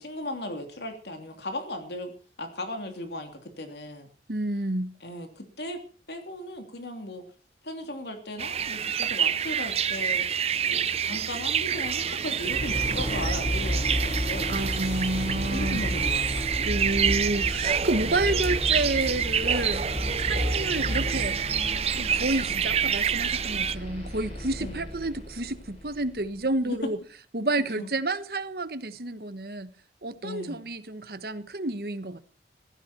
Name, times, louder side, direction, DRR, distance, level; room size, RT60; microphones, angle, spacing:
voice 1, 0.0-2.1 2.4-4.1 5.0-5.8 6.1-7.2 7.6-10.3 10.5-14.6 15.5-16.4 17.8-18.2 24.6-24.8 26.6-26.8 27.8-27.9 30.2-30.7, left 1 dB, 75° left, 3.0 m, -37 dB
voice 2, 4.3-4.9 14.5-15.8 16.6-19.9 20.2-21.4 22.0-27.0 27.3-29.7 30.0-32.2, right 2 dB, 60° right, 1.3 m, -30 dB
sound 1, 8.4-23.8, right 8 dB, 35° right, 0.6 m, -28 dB
sound 2, 12.4-26.3, equal, 35° left, 7.4 m, -32 dB
16.5 x 15.0 x 4.4 m
head